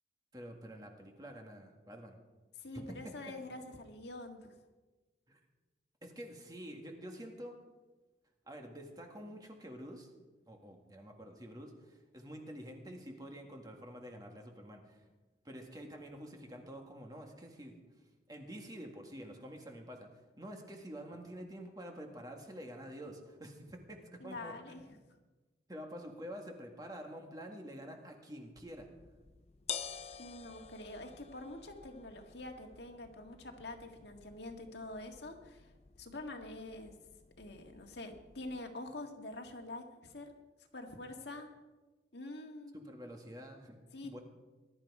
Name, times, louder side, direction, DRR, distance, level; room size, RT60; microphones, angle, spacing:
voice 1, 0.3-2.2 2.7-3.1 5.3-5.4 6.0-7.6 8.5-10.1 10.5-15.1 15.4-17.7 18.3-24.5 25.7-28.9 42.7-44.2, equal, 20° right, 2 dB, 1.9 m, -48 dB
voice 2, 2.6-4.5 24.2-24.9 30.2-35.7 36.0-36.9 37.4-40.3 40.7-41.5 42.1-42.8 43.9-44.2, left 2 dB, 65° left, 3 dB, 1.8 m, -46 dB
sound 1, 28.6-38.6, left 8 dB, 35° left, 0.5 m, -50 dB
20.0 x 12.0 x 4.9 m, 1.2 s
head